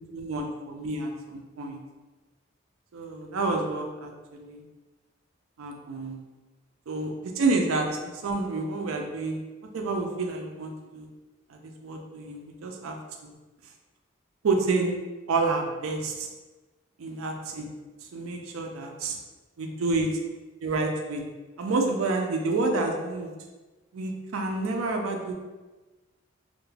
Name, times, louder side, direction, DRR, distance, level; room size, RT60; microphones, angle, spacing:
voice 1, 0.1-1.8 2.9-4.6 5.6-6.2 6.9-9.4 9.7-11.1 11.5-13.0 13.2-13.3 14.4-14.9 15.3-16.3 17.0-17.7 18.1-19.2 19.6-20.1 20.6-21.2 21.6-23.3 23.9-25.3, right 3 dB, 90° right, 2 dB, 0.4 m, -29 dB
2.3 x 2.1 x 3.1 m, 1.2 s
head